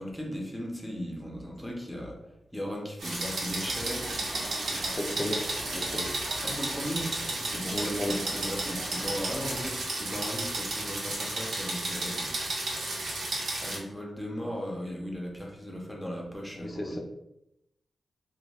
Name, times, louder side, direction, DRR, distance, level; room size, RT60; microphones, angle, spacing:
voice 1, 0.0-2.2 2.5-4.4 6.4-7.1 7.4-12.6 13.6-17.0, equal, 5° left, -1 dB, 0.9 m, -37 dB
sound 1, 3.0-13.8, right 2 dB, 90° right, 1.0 m, -33 dB
sound 2, 3.4-9.6, right 1 dB, 70° right, 0.6 m, -44 dB
voice 2, 4.8-5.4 5.7-6.1 7.7-8.2 16.6-17.0, left 1 dB, 30° left, 2 dB, 0.6 m, -33 dB
3.5 x 2.3 x 3.4 m, 0.85 s
wide cardioid pair, 100°, 0 cm